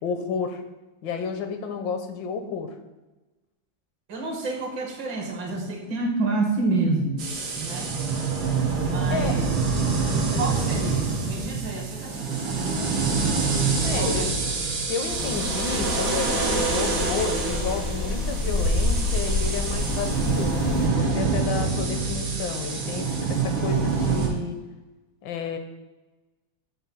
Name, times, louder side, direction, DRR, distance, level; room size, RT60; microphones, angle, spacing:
voice 1, 0.0-0.6 1.0-2.7 9.1-9.4 13.8-14.3 14.9-24.6 25.2-25.6, left 5 dB, 75° left, 7 dB, 1.4 m, -31 dB
voice 2, 4.1-7.2 7.5-7.9 8.8-9.5 10.4-13.3 14.0-14.3 15.1-15.3, right 3 dB, 70° right, -1 dB, 2.0 m, -29 dB
sound 1, 7.2-24.3, right 4 dB, 90° right, 1.9 m, -26 dB
sound 2, 15.1-20.9, left 2 dB, 60° left, 0.6 m, -28 dB
7.7 x 2.6 x 5.3 m, 1.1 s
omnidirectional pair, 2.0 m